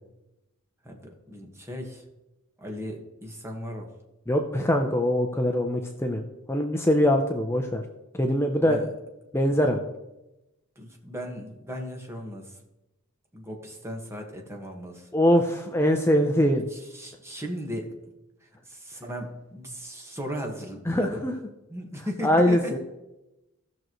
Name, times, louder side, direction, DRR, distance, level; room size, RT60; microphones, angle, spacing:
voice 1, 0.8-2.0 2.6-3.9 8.6-8.9 10.7-12.6 13.3-15.1 16.7-17.9 18.4-21.3 21.7-22.8, equal, 10° right, 1 dB, 1.5 m, -37 dB
voice 2, 4.3-7.8 8.2-8.8 9.3-9.8 15.1-16.7 20.9-21.3 22.2-22.8, equal, 10° left, 4 dB, 0.6 m, -23 dB
16.5 x 6.3 x 3.1 m, 0.97 s
head